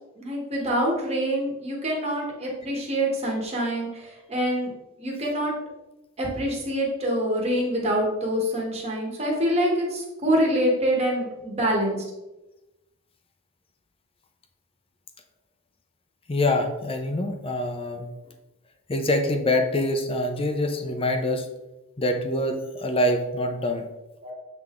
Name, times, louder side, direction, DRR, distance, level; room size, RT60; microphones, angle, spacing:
voice 1, 0.2-4.7 5.0-5.5 6.2-12.0 23.7-23.8 24.2-24.3, equal, 30° right, -2 dB, 1.5 m, -25 dB
voice 2, 16.3-18.1 18.9-21.5 22.0-23.9, left 1 dB, 25° left, 5 dB, 0.6 m, -25 dB
7.8 x 3.5 x 3.6 m, 1.0 s
head